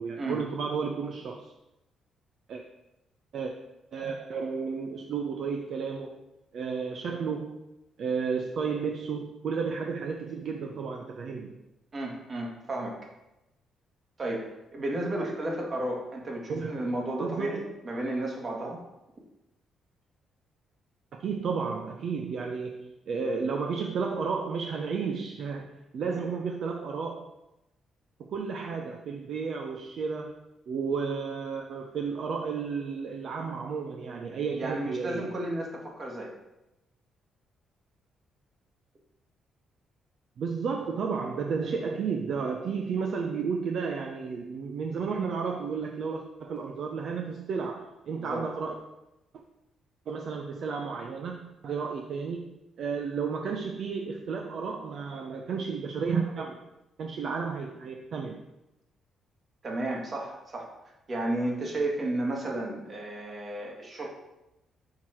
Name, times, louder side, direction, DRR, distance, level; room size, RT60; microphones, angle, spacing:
voice 1, 0.0-1.5 2.5-2.6 3.3-3.5 3.9-6.2 6.5-7.6 8.0-11.6 16.5-16.7 17.2-17.7 21.2-25.7 25.9-27.3 28.2-30.3 30.7-35.3 40.4-48.8 50.1-52.4 52.8-56.6 57.0-58.4, right 5 dB, 65° right, 2 dB, 0.6 m, -32 dB
voice 2, 11.9-13.0 14.2-17.6 17.8-18.8 34.6-36.3 48.2-48.5 59.6-60.7 61.1-64.1, right 1 dB, 40° right, -1 dB, 1.8 m, -33 dB
5.7 x 4.7 x 4.4 m, 0.93 s
cardioid pair, 90°, 0 cm